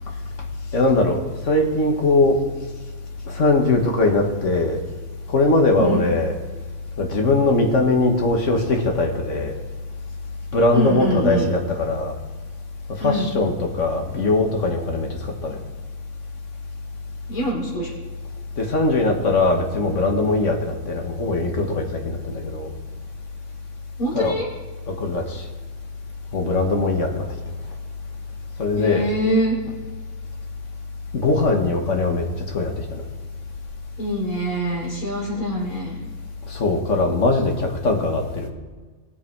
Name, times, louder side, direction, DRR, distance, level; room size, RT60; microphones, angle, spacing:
voice 1, 0.7-2.4 3.3-4.8 5.3-6.3 7.0-9.5 10.5-12.1 13.0-15.1 15.4-15.6 18.6-22.7 24.1-24.4 24.9-25.4 26.3-27.2 28.6-29.1 31.1-32.3 32.5-33.0 36.5-38.5, left 2 dB, 55° left, 2 dB, 1.9 m, -21 dB
voice 2, 10.7-11.5 13.0-13.3 17.3-17.9 24.0-24.5 28.8-29.6 34.0-36.0, right 1 dB, 75° left, -3 dB, 3.9 m, -24 dB
19.5 x 6.9 x 4.7 m, 1.4 s
omnidirectional pair, 1.5 m